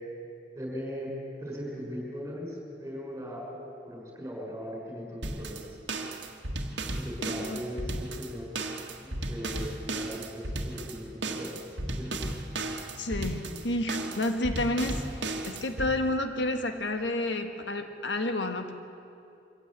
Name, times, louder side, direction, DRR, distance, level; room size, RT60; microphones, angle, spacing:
voice 1, 0.5-1.1 1.4-5.8 6.9-8.5 9.0-12.2, equal, 15° right, -2 dB, 6.1 m, -39 dB
sound 1, 5.2-15.9, right 2 dB, 85° right, 1.7 m, -35 dB
voice 2, 7.3-7.6 13.0-18.7, left 1 dB, 90° left, 6 dB, 1.5 m, -30 dB
24.0 x 16.0 x 8.6 m, 2.6 s
head